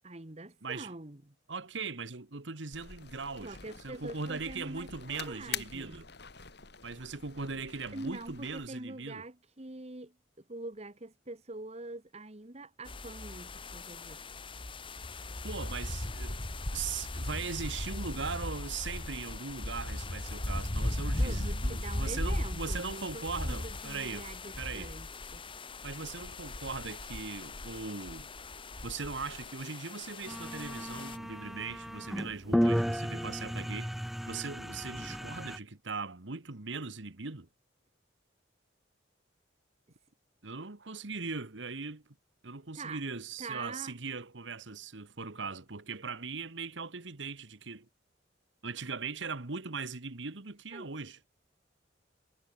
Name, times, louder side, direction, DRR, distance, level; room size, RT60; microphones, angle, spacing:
voice 1, 0.0-1.3 3.4-6.0 7.9-14.2 21.2-25.4 42.7-43.0 43.4-43.9 50.7-50.9, right 2 dB, 35° right, 1.7 m, -44 dB
voice 2, 1.5-3.6 3.8-6.1 6.8-9.2 15.4-16.4 16.7-24.3 24.6-24.9 25.8-28.3 28.8-34.0 34.3-37.5 40.4-42.0 42.4-47.9 48.6-51.2, right 4 dB, 75° right, 1.5 m, -39 dB
sound 1, 2.7-8.7, left 8 dB, 60° left, 5.5 m, -46 dB
sound 2, 12.9-31.2, left 1 dB, 25° left, 1.6 m, -38 dB
sound 3, 30.3-35.6, equal, ahead, 0.6 m, -33 dB
head